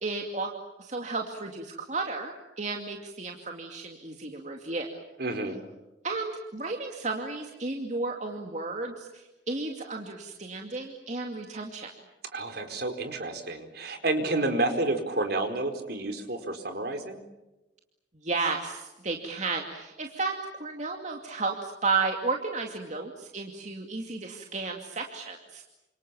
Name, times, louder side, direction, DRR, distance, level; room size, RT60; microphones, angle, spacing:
voice 1, 0.0-0.5 0.8-5.0 6.0-11.9 18.2-25.6, right 3 dB, 40° right, 2 dB, 2.5 m, -33 dB
voice 2, 5.2-5.6 12.3-17.2, right 2 dB, 55° right, 7 dB, 4.5 m, -30 dB
29.5 x 27.0 x 7.3 m, 1.0 s
head